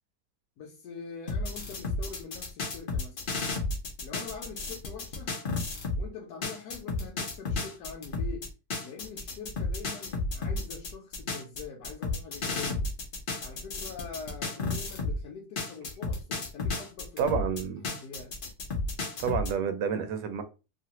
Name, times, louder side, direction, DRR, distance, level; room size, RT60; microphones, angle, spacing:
voice 1, 0.6-3.2 4.0-5.4 6.0-8.5 8.8-12.9 13.4-17.2 17.9-18.3, left 5 dB, 75° left, 1.1 m, -44 dB
sound 1, 1.3-6.0 6.4-15.2 15.6-19.5, left 3 dB, 90° left, 0.4 m, -33 dB
voice 2, 17.2-18.0 19.2-20.4, right 7 dB, 90° right, 1.2 m, -29 dB
2.9 x 2.4 x 2.8 m
omnidirectional pair, 1.8 m